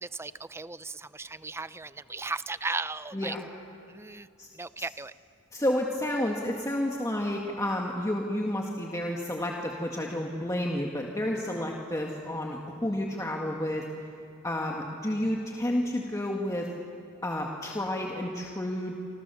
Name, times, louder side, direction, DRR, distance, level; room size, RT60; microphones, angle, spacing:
voice 1, 0.0-3.4 3.9-4.3 4.5-5.1, right 3 dB, 10° right, 15 dB, 0.5 m, -36 dB
voice 2, 5.5-13.9 14.4-16.7 17.2-18.9, left 1 dB, 15° left, -1 dB, 1.9 m, -30 dB
28.0 x 26.5 x 7.0 m, 2.4 s
head